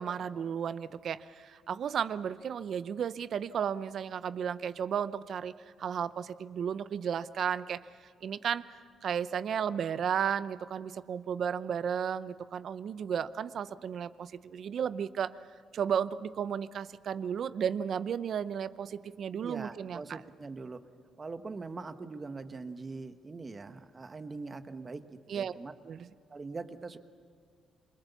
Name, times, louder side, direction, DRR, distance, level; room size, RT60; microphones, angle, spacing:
voice 1, 0.0-5.5 5.8-7.8 8.2-8.6 9.0-15.3 15.7-20.2 25.3-25.5 25.9-26.1, right 8 dB, 60° right, 15 dB, 0.7 m, -33 dB
voice 2, 19.4-20.8 21.2-25.7 26.3-27.0, right 3 dB, 30° right, 9 dB, 1.3 m, -42 dB
28.0 x 22.0 x 7.1 m, 2.1 s
cardioid pair, 90°, 0 cm